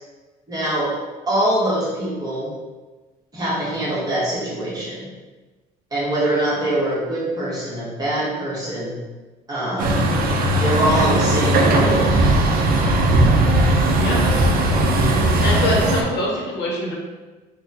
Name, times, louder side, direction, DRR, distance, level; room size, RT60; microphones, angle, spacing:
voice 1, 0.5-1.0 1.3-2.5 3.3-5.0 5.9-8.9 9.5-10.0 10.5-12.0, right 1 dB, 20° right, -8 dB, 1.5 m, -23 dB
Truck, 9.8-16.0, right 1 dB, 60° right, 0.5 m, -17 dB
voice 2, 15.4-16.9, left 1 dB, 85° left, -3 dB, 0.9 m, -24 dB
4.2 x 2.3 x 2.7 m, 1.2 s
cardioid pair, 110°, 17 cm